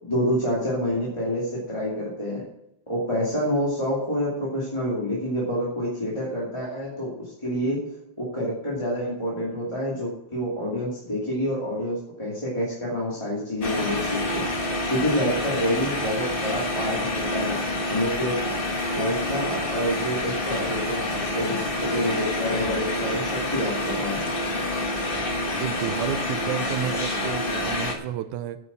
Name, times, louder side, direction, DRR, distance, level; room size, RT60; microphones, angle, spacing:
voice 1, 0.0-2.4 2.9-7.8 8.2-17.6 17.9-18.3 18.9-24.3, equal, 10° left, -6 dB, 2.2 m, -28 dB
sound 1, 13.6-27.9, left 1 dB, 35° left, 0.8 m, -28 dB
voice 2, 25.6-28.6, right 11 dB, 85° right, 10 dB, 2.0 m, -31 dB
9.6 x 8.1 x 5.9 m, 0.83 s
omnidirectional pair, 3.5 m